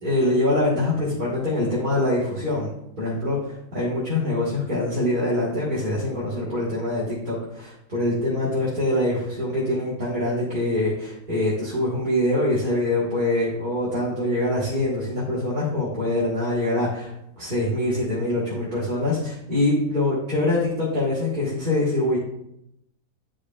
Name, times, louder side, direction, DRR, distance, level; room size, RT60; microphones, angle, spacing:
voice 1, 0.0-2.7 3.0-22.2, left 1 dB, 30° right, -8 dB, 1.7 m, -24 dB
10.5 x 4.8 x 2.4 m, 0.80 s
omnidirectional pair, 1.6 m